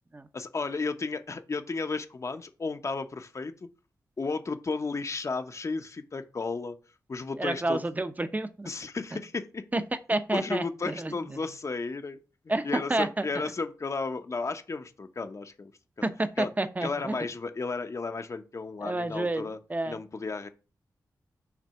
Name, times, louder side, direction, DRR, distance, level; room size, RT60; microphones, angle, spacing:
voice 1, 0.3-3.5 4.2-6.8 7.1-7.8 8.6-9.7 10.3-12.2 12.4-15.7 16.4-16.5 16.8-19.6 19.8-20.5, left 4 dB, 45° left, 0.8 m, -33 dB
voice 2, 7.4-8.7 9.7-9.8 10.1-11.1 12.5-13.3 16.0-17.1 18.8-19.4 19.7-20.0, right 2 dB, 25° right, 0.7 m, -29 dB
5.9 x 3.4 x 5.6 m
cardioid pair, 60°, 7 cm